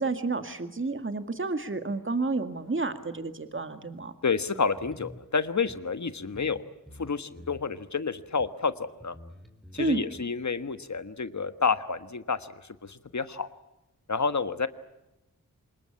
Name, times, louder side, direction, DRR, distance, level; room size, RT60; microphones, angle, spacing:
voice 1, 0.0-4.1 9.8-10.0, right 3 dB, 35° right, 9 dB, 2.0 m, -30 dB
voice 2, 4.2-6.6 7.0-9.2 9.7-13.5 14.1-14.7, left 5 dB, 55° left, 12 dB, 1.4 m, -29 dB
sound 1, 4.7-5.2 5.7-5.8 6.3-6.6 6.9-7.7 8.4-8.5 9.0-10.2, left 1 dB, ahead, 3.9 m, -48 dB
26.0 x 21.0 x 8.6 m, 0.94 s
cardioid pair, 50°, 33 cm